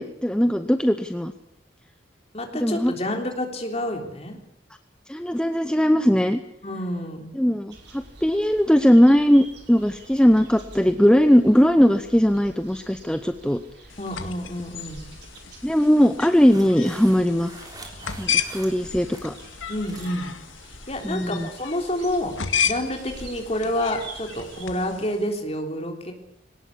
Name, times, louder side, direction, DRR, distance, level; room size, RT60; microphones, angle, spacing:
voice 1, 0.0-1.3 2.6-2.9 5.1-6.4 7.3-13.6 15.6-17.5 18.2-19.3 21.0-21.5, equal, 5° left, 8 dB, 0.8 m, -19 dB
voice 2, 2.3-4.4 6.6-7.3 14.0-15.1 19.7-20.3 20.9-22.4 22.6-26.1, left 1 dB, 30° left, 4 dB, 3.5 m, -28 dB
sound 1, 7.7-24.7, right 3 dB, 55° right, 5.4 m, -47 dB
sound 2, 13.9-25.2, left 7 dB, 80° left, 2.1 m, -33 dB
sound 3, 16.5-19.3 19.6-20.2 20.6-20.8 21.4-21.6, right 3 dB, 20° right, 3.5 m, -45 dB
21.5 x 18.5 x 8.6 m, 0.78 s
head